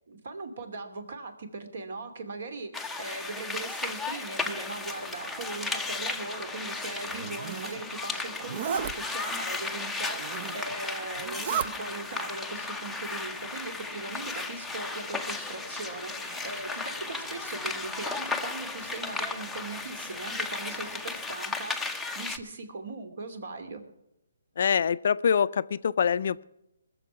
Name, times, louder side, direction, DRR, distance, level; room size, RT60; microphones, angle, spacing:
voice 1, 0.1-2.7 3.0-23.8, right 3 dB, 60° right, 8 dB, 2.7 m, -39 dB
sound 1, 2.7-22.4, left 3 dB, 5° left, 0.6 m, -35 dB
sound 2, 4.3-21.3, right 2 dB, 80° right, 5.0 m, -52 dB
Zipper (clothing), 7.0-7.8 8.4-8.9 10.0-10.8 11.2-11.7, right 7 dB, 40° right, 0.6 m, -33 dB
voice 2, 24.6-26.5, left 7 dB, 55° left, 16 dB, 0.4 m, -25 dB
20.0 x 7.0 x 7.0 m, 0.85 s
hypercardioid pair, 160°, 0 cm